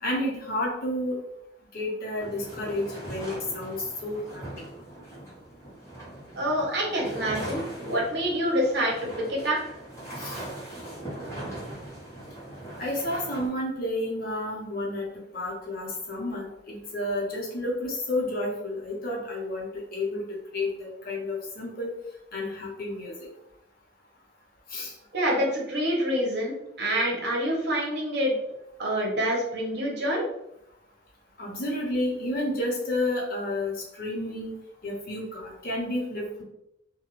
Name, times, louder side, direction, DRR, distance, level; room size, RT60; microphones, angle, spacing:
voice 1, 0.0-1.2 1.7-4.4 10.2-10.4 12.8-15.1 15.3-21.9 22.3-23.1 24.7-24.9 31.4-34.6 34.8-36.4, left 1 dB, 50° left, -2 dB, 0.8 m, -31 dB
sound 1, 2.2-13.5, right 1 dB, 15° left, 1.1 m, -40 dB
voice 2, 6.3-9.6 25.1-28.3 28.8-30.2, equal, 60° right, -2 dB, 0.8 m, -27 dB
2.4 x 2.2 x 3.0 m, 0.82 s
head